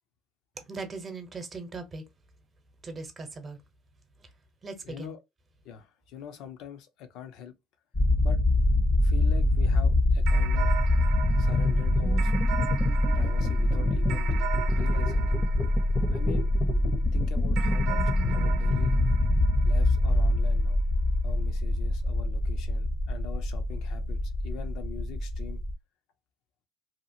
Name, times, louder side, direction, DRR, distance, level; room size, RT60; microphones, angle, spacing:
voice 1, 0.7-2.0 2.8-3.6 4.6-5.1, right 3 dB, 30° right, 0.9 m, -39 dB
voice 2, 4.8-5.2 5.6-7.5 8.2-8.4 9.0-10.7 11.4-12.3 13.1-15.4 16.1-16.5 17.1-18.0 18.3-18.9 19.6-20.8 21.2-25.6, left 8 dB, 70° left, 0.6 m, -43 dB
sound 1, 7.9-25.7, left 1 dB, 20° left, 0.7 m, -24 dB
sound 2, 10.3-16.9 17.6-20.3, right 11 dB, 65° right, 0.5 m, -39 dB
2.8 x 2.4 x 2.7 m
supercardioid pair, 110°, 0 cm